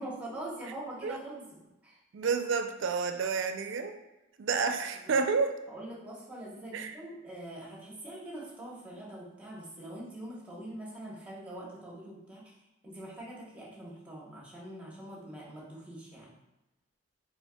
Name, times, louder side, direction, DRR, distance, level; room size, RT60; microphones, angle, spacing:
voice 1, 0.0-2.0 5.7-12.5 12.8-16.3, right 1 dB, 5° right, -5 dB, 1.0 m, -43 dB
voice 2, 2.1-4.0 4.4-5.5 6.7-7.0, right 5 dB, 65° right, 7 dB, 0.4 m, -30 dB
4.7 x 4.4 x 2.3 m, 0.97 s
head